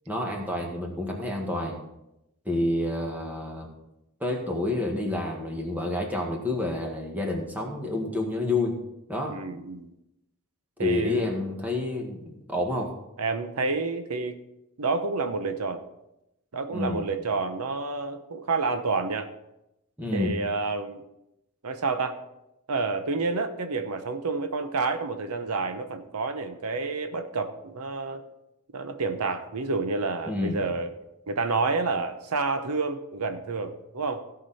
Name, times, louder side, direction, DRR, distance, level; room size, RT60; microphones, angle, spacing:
voice 1, 0.1-1.8 2.5-3.7 4.2-8.8 9.1-9.4 10.8-12.9 16.7-17.1 20.0-20.3 30.3-30.6, left 2 dB, 5° right, 0 dB, 1.7 m, -29 dB
voice 2, 9.3-9.9 10.8-11.3 13.2-14.4 14.8-15.8 16.5-19.3 20.1-21.0 21.6-22.2 22.7-28.2 28.7-30.9 31.3-34.2, right 3 dB, 85° right, 8 dB, 0.9 m, -29 dB
16.5 x 6.0 x 4.2 m, 0.88 s
head